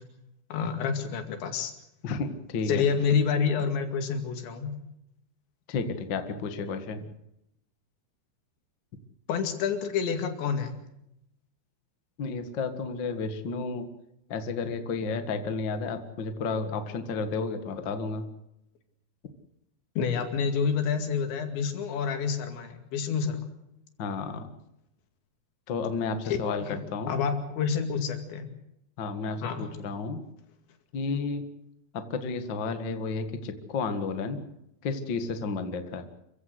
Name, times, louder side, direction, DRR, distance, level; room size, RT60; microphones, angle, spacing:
voice 1, 0.5-1.7 2.7-4.7 9.3-10.7 20.0-23.5 26.6-26.8 27.1-28.5 29.4-29.7, left 6 dB, 85° left, 6 dB, 4.6 m, -28 dB
voice 2, 2.0-2.8 5.7-7.1 12.2-13.9 14.3-18.3 24.0-24.5 25.7-27.2 29.0-30.2 30.9-31.4 31.9-34.4 34.8-36.1, left 4 dB, 60° left, 7 dB, 1.2 m, -32 dB
27.0 x 15.5 x 8.1 m, 0.82 s
omnidirectional pair, 5.1 m